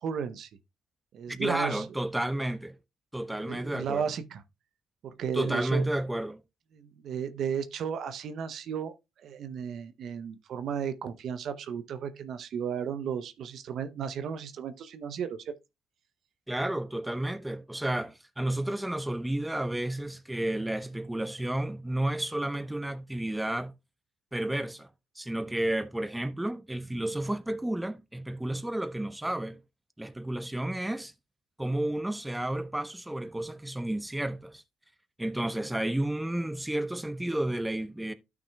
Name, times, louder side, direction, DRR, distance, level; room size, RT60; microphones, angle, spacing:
voice 1, 0.0-0.5 1.1-1.8 3.4-4.4 5.0-5.8 6.7-8.9 9.2-15.5, right 7 dB, 65° right, 0.7 m, -34 dB
voice 2, 1.3-2.8 3.1-4.1 5.3-6.4 16.5-23.7 24.3-24.9 25.2-29.6 30.0-31.1 31.6-34.6 35.2-38.1, right 1 dB, 10° right, 0.9 m, -31 dB
13.0 x 5.9 x 2.3 m
supercardioid pair, 55°, 0 cm